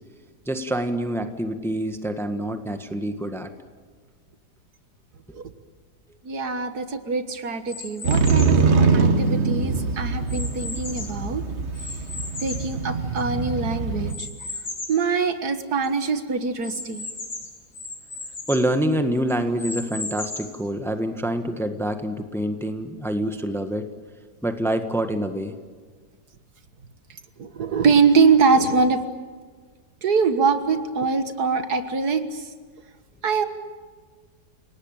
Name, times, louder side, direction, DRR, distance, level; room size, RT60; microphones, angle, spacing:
voice 1, 0.4-3.5 18.5-23.9 24.4-25.5, right 1 dB, ahead, 7 dB, 1.4 m, -26 dB
voice 2, 6.2-11.4 12.4-14.3 14.9-17.1 27.4-29.0 30.0-32.5 33.2-33.5, right 5 dB, 70° right, 9 dB, 2.0 m, -23 dB
sound 1, 7.7-8.6 9.3-11.3 11.8-13.4 14.1-15.1 15.5-15.6 15.8-15.9 16.6-18.7 19.3-20.6, left 3 dB, 75° left, 3.8 m, -36 dB
Motorcycle, 8.0-14.1, right 4 dB, 45° right, 1.6 m, -23 dB
29.5 x 18.5 x 9.0 m, 1.5 s
omnidirectional pair, 1.8 m